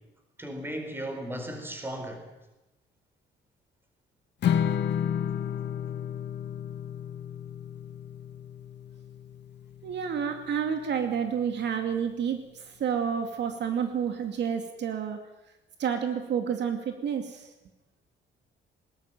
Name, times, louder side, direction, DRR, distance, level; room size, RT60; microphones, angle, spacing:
voice 1, 0.4-2.2, right 1 dB, 10° right, 4 dB, 4.6 m, -36 dB
Strum, 4.4-10.7, left 9 dB, 60° left, 1.7 m, -32 dB
voice 2, 9.8-15.2 15.8-17.5, right 7 dB, 65° right, 6 dB, 2.4 m, -30 dB
20.5 x 19.5 x 9.3 m, 0.98 s
cardioid pair, 165°, 20 cm